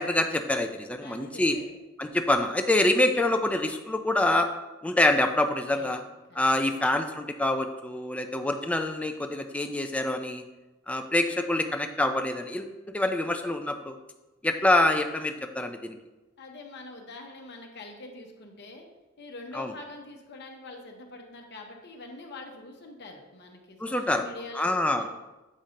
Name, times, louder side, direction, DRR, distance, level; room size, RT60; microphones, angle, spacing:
voice 1, 0.0-1.6 2.0-4.5 4.8-6.0 6.4-10.4 10.9-12.7 12.9-14.0 14.4-16.0 19.5-19.7 23.8-24.2 24.6-25.1, left 1 dB, 5° left, 5 dB, 0.3 m, -26 dB
voice 2, 1.0-1.7 5.4-6.9 16.4-18.9 19.2-25.1, left 2 dB, 55° left, 2 dB, 0.9 m, -45 dB
7.3 x 2.7 x 5.0 m, 1.1 s
head